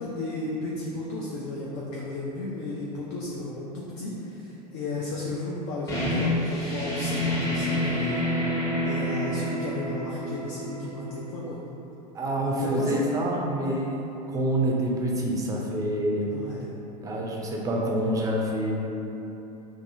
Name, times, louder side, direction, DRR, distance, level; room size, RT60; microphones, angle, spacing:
voice 1, 0.0-8.2 8.8-11.6 12.5-13.0 16.3-16.7, left 2 dB, 50° left, -6 dB, 0.4 m, -34 dB
sound 1, 5.9-11.3, equal, 15° left, 0.8 m, -28 dB
voice 2, 12.1-13.9 14.3-16.2 17.0-18.8, right 1 dB, 15° right, -2 dB, 0.4 m, -27 dB
2.6 x 2.3 x 2.6 m, 3.0 s
hypercardioid pair, 85°, 21 cm